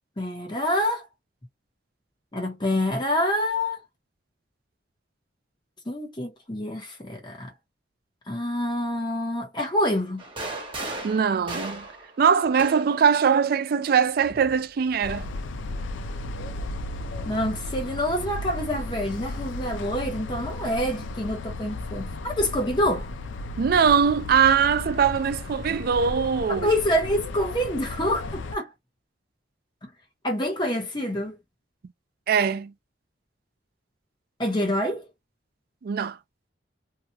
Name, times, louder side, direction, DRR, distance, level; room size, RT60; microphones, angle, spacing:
voice 1, 0.2-1.1 2.3-3.8 5.9-7.5 8.3-10.2 17.2-23.1 26.5-28.7 29.8-29.9 30.2-31.4 34.4-35.1, left 1 dB, 25° left, 1.0 m, -27 dB
sound 1, 10.2-13.1 14.2-15.3, right 2 dB, 25° right, 1.0 m, -36 dB
voice 2, 11.0-11.8 12.2-15.3 23.6-26.7 32.3-32.7 35.8-36.2, right 6 dB, 55° right, 0.3 m, -21 dB
sound 2, 15.0-28.6, left 2 dB, 85° left, 0.5 m, -35 dB
2.9 x 2.3 x 2.8 m
head